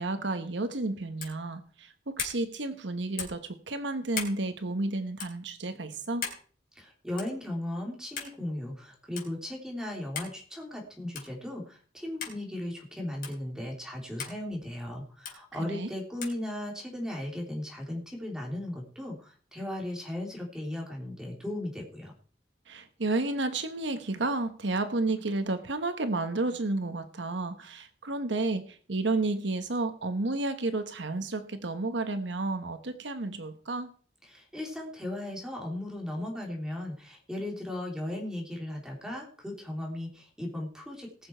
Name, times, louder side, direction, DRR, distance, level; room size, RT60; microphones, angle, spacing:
voice 1, 0.0-6.2 15.6-15.9 22.7-33.9, right 2 dB, 75° right, 9 dB, 1.1 m, -31 dB
sound 1, 1.2-1.4 2.2-2.4 3.2-3.4 4.1-4.4 5.2-5.3 6.2-6.4 7.2-7.4 8.2-8.3 9.2-9.3 10.1-10.4 11.1-11.4 12.2-12.4 13.2-13.4 14.2-14.4 15.2-15.4 16.2-16.4, left 7 dB, 50° left, 3.9 m, -37 dB
voice 2, 6.7-22.1 34.2-41.3, left 1 dB, 5° right, -1 dB, 3.2 m, -37 dB
19.5 x 7.0 x 4.5 m, 0.43 s
head